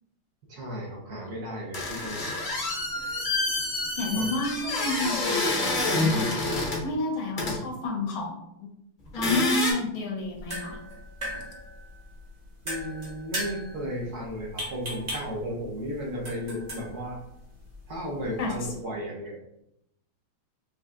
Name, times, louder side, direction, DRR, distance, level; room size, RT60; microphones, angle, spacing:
voice 1, 0.5-2.3 4.1-4.2 12.6-17.2 17.9-19.6, equal, 60° right, -3 dB, 1.2 m, -34 dB
sound 1, 1.7-6.8 7.4-7.5 9.1-9.7, left 2 dB, 40° left, 0.6 m, -28 dB
voice 2, 4.0-6.3 6.8-8.7 9.1-10.8 18.4-18.5, left 2 dB, 80° left, 1 dB, 1.6 m, -30 dB
sound 2, 10.2-18.8, equal, 30° right, 0.9 m, -39 dB
5.4 x 3.2 x 2.4 m, 0.80 s
omnidirectional pair, 2.2 m